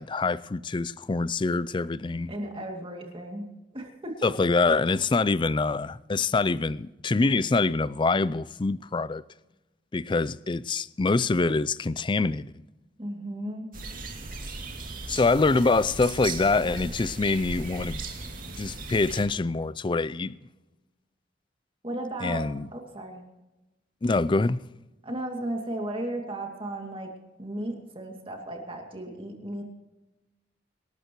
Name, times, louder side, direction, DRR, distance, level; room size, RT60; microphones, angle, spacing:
voice 1, 0.0-2.3 4.2-9.2 9.9-12.5 15.1-18.0 18.5-20.4 22.2-22.7 24.0-24.6, left 3 dB, 25° left, 0.4 m, -25 dB
voice 2, 2.3-3.5 3.7-4.2 13.0-13.7 21.8-22.4 22.7-23.2 25.0-27.1 27.4-29.6, right 1 dB, 30° right, 2.5 m, -35 dB
sound 1, 13.7-19.2, right 3 dB, 45° right, 2.7 m, -37 dB
26.0 x 13.0 x 3.1 m
head